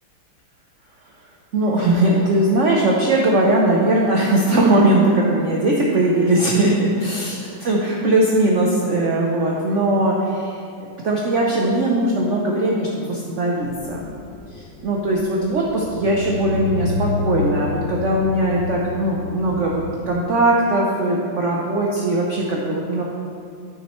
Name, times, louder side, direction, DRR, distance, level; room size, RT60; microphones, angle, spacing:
voice 1, 1.5-7.3 7.7-10.6 11.0-14.1 14.5-23.0, right 1 dB, 75° right, -2 dB, 0.6 m, -19 dB
sound 1, 13.6-20.2, left 3 dB, 30° left, 1.4 m, -29 dB
9.1 x 6.3 x 3.0 m, 2.4 s
omnidirectional pair, 2.2 m